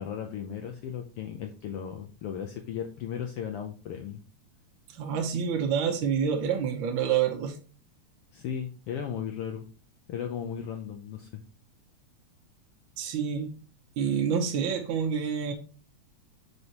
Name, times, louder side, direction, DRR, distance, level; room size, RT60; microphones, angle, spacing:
voice 1, 0.0-4.2 8.3-9.7 10.1-11.4, left 8 dB, 75° left, 1.4 m, -36 dB
voice 2, 4.9-7.5 13.0-13.6 14.0-15.5, right 7 dB, 70° right, 1.2 m, -28 dB
7.9 x 5.4 x 2.9 m
omnidirectional pair, 3.3 m